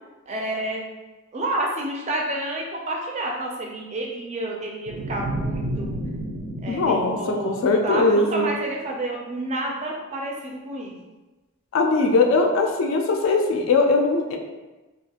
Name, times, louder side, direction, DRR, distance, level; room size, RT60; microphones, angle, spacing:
voice 1, 0.3-0.8 1.3-6.0 6.6-7.6 7.8-10.9, right 1 dB, 30° right, -1 dB, 0.3 m, -29 dB
sound 1, 4.9-8.1, right 1 dB, 85° right, 0.5 m, -31 dB
voice 2, 6.7-8.5 11.7-14.4, left 3 dB, 70° left, 3 dB, 0.3 m, -20 dB
2.4 x 2.3 x 2.8 m, 1.1 s
head